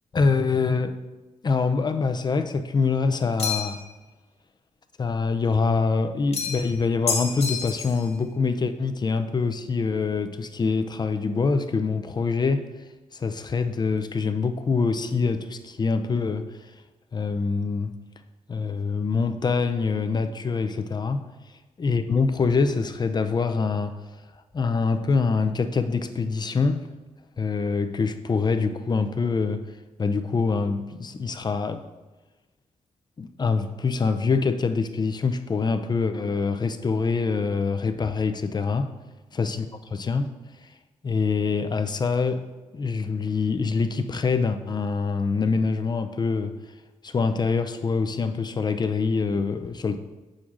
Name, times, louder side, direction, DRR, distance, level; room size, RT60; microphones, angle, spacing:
voice 1, 0.1-0.9 1.4-3.8 5.0-12.7 13.1-16.5 17.1-18.0 18.5-21.2 21.8-24.0 24.5-26.8 27.4-29.6 30.0-31.8 33.2-38.9 39.3-40.3 41.0-42.4 42.7-46.5 47.0-50.0, left 4 dB, 35° left, 0.4 m, -25 dB
sound 1, 3.4-3.9 6.3-6.7 7.1-8.0, left 5 dB, 55° left, 1.4 m, -28 dB
8.4 x 6.2 x 2.5 m
cardioid pair, 90°, 13 cm